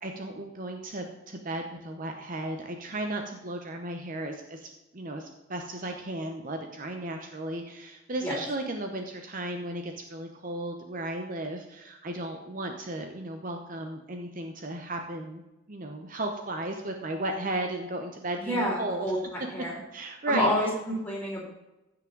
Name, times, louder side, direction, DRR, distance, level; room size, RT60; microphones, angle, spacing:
voice 1, 0.0-15.4 15.7-19.1 19.9-20.5, right 1 dB, 40° right, 4 dB, 0.8 m, -35 dB
voice 2, 18.4-19.7 20.3-21.4, equal, 10° left, -4 dB, 3.4 m, -29 dB
15.5 x 5.9 x 3.9 m, 0.99 s
head